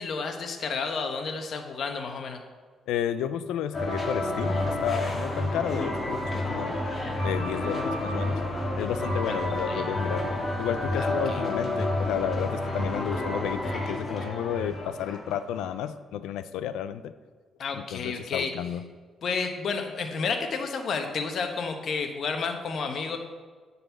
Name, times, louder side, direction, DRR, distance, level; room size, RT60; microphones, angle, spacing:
voice 1, 0.0-2.4 9.3-9.4 9.7-9.8 11.0-11.4 17.6-18.5 19.2-23.2, left 5 dB, 60° left, 5 dB, 1.1 m, -31 dB
voice 2, 2.9-6.8 7.2-8.4 8.8-17.1 17.7-18.9, left 9 dB, 90° left, 13 dB, 0.4 m, -32 dB
sound 1, 3.7-15.7, left 1 dB, 30° left, 1.8 m, -30 dB
8.8 x 4.2 x 6.9 m, 1.5 s
cardioid pair, 90°, 0 cm